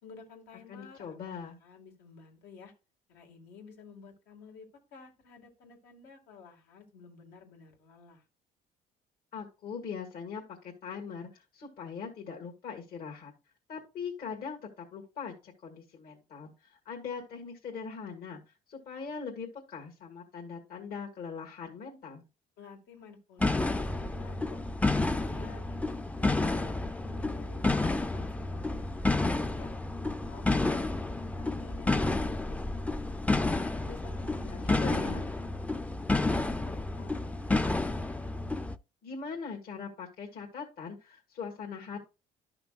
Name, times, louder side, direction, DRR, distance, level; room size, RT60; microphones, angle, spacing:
voice 1, 0.0-2.7 3.1-8.2 22.6-24.6 24.9-29.7 30.2-33.4 33.8-37.3 37.6-37.7, left 5 dB, 85° left, 2 dB, 2.4 m, -53 dB
voice 2, 0.7-1.6 9.3-13.3 13.7-18.4 18.7-22.2 34.4-35.2 39.0-42.0, left 6 dB, 60° left, 0 dB, 1.8 m, -41 dB
sound 1, 23.4-38.7, left 2 dB, 10° left, 0.5 m, -30 dB
12.0 x 5.9 x 2.4 m, 0.28 s
cardioid pair, 110°, 17 cm